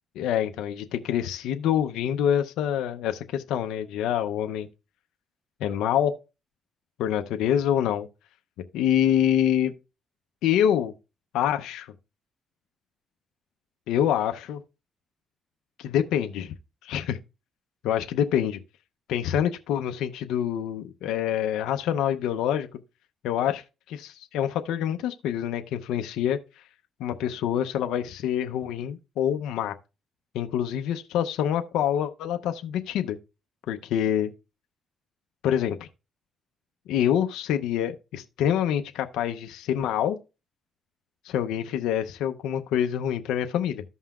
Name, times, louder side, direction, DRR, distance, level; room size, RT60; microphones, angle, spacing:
voice 1, 0.2-4.7 5.6-6.1 7.0-8.1 8.7-9.7 10.4-10.9 11.3-11.9 13.9-14.6 15.8-16.5 16.8-17.2 17.8-18.6 19.1-22.7 23.2-26.6 27.0-29.7 30.3-33.2 33.7-34.3 35.4-35.9 36.9-40.2 41.2-43.8, left 10 dB, 90° left, 0.6 m, -26 dB
14.0 x 5.5 x 2.3 m
cardioid pair, 90°, 0 cm